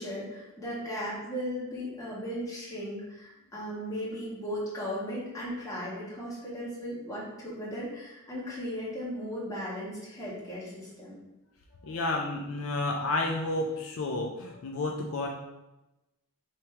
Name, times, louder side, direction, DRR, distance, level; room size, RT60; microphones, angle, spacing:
voice 1, 0.0-11.2, equal, 15° left, -7 dB, 1.4 m, -36 dB
voice 2, 11.8-15.3, left 2 dB, 65° left, 1 dB, 0.4 m, -31 dB
3.4 x 3.1 x 4.4 m, 0.97 s
head